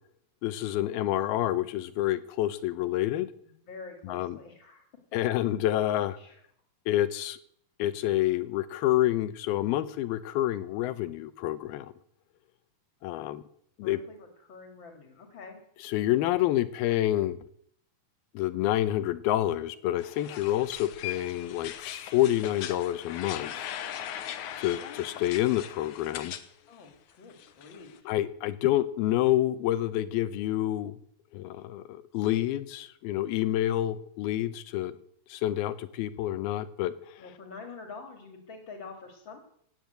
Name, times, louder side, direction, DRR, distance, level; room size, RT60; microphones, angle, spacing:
voice 1, 0.4-3.3 4.0-4.4 5.1-6.2 6.9-7.4 7.8-11.9 13.0-13.4 13.8-14.0 15.8-17.4 18.3-23.7 24.6-26.3 28.1-31.0 31.3-35.0 35.3-36.9, left 14 dB, 85° left, 14 dB, 2.8 m, -28 dB
voice 2, 3.7-4.9 6.2-6.4 13.8-15.6 26.7-28.1 37.2-39.4, left 4 dB, 35° left, 3 dB, 2.5 m, -46 dB
sound 1, 20.0-26.5 26.7-28.0, left 10 dB, 65° left, 2.1 m, -40 dB
17.5 x 9.4 x 8.0 m, 0.66 s
omnidirectional pair, 4.3 m